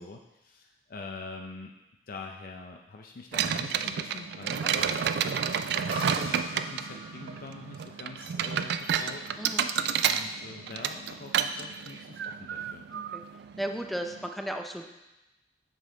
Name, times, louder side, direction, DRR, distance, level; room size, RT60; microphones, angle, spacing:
voice 1, 0.0-1.7 2.1-5.4 6.1-9.7 10.0-12.9, left 3 dB, 55° left, 2 dB, 0.5 m, -45 dB
sound 1, 3.3-14.3, right 7 dB, 60° right, 0.3 m, -31 dB
sound 2, 5.9-9.4, equal, 30° right, 1.1 m, -43 dB
voice 2, 9.4-9.7 12.9-13.2 13.6-14.8, right 1 dB, ahead, 3 dB, 0.5 m, -35 dB
6.4 x 6.4 x 3.8 m, 0.98 s
head